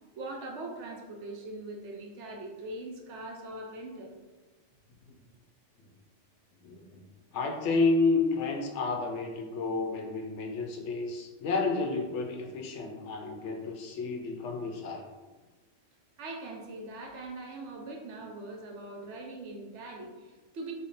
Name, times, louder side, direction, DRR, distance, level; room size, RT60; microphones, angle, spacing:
voice 1, 0.2-4.1 16.2-20.7, right 2 dB, 70° right, 1 dB, 0.9 m, -41 dB
voice 2, 6.6-7.0 7.3-15.1, left 3 dB, 75° left, 2 dB, 0.8 m, -30 dB
3.6 x 2.1 x 3.8 m, 1.2 s
omnidirectional pair, 1.3 m